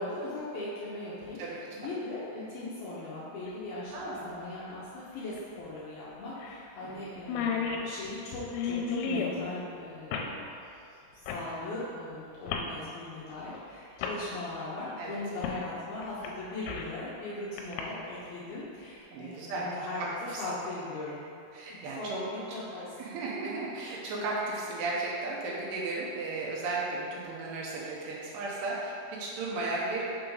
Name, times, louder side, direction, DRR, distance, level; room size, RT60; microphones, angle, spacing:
voice 1, 0.0-10.4 11.2-21.2 21.7-22.9, left 2 dB, 75° left, -7 dB, 2.4 m, -39 dB
sound 1, 3.5-3.6 5.3-5.4 5.8-5.9 6.4-6.6 6.9-7.0 7.2-9.4 10.1-10.3 11.3-11.5 12.5-12.7 13.5-13.6 14.0-14.2 15.4-15.6 16.0-17.0 17.6-17.8, left 5 dB, 90° left, 2.9 m, -33 dB
voice 2, 3.9-4.3 6.8-7.1 15.0-15.2 19.1-19.7 20.0-20.4 21.5-22.2 23.0-30.0, right 3 dB, 75° right, -5 dB, 2.8 m, -35 dB
6.9 x 5.7 x 3.9 m, 2.6 s
omnidirectional pair, 5.2 m